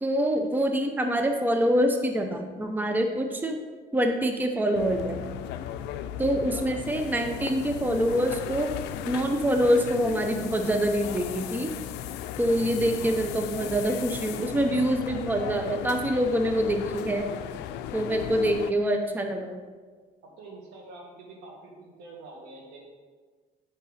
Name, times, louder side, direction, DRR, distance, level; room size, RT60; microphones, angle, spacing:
voice 1, 0.0-3.6 3.9-5.2 6.2-8.7 9.0-11.7 12.4-17.3 17.9-19.6, equal, 10° right, 4 dB, 0.7 m, -25 dB
sound 1, 4.7-18.7, left 11 dB, 90° left, 0.4 m, -36 dB
voice 2, 5.4-5.9 11.1-11.7 20.4-22.8, right 2 dB, 85° right, -1 dB, 2.0 m, -47 dB
8.4 x 5.4 x 4.1 m, 1.4 s
cardioid pair, 110°, 17 cm